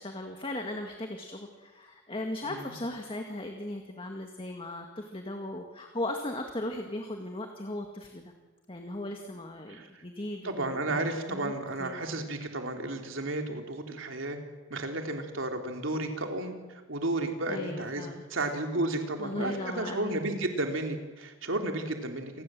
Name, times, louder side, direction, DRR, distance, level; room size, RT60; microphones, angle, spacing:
voice 1, 0.0-8.3 8.7-11.5 11.8-12.0 17.5-18.2 19.2-20.1, left 1 dB, 25° left, 4 dB, 2.1 m, -37 dB
voice 2, 2.4-2.7 9.7-10.0 10.4-14.4 14.7-22.4, right 2 dB, 75° right, 4 dB, 3.5 m, -33 dB
28.0 x 20.5 x 7.8 m, 1.3 s
head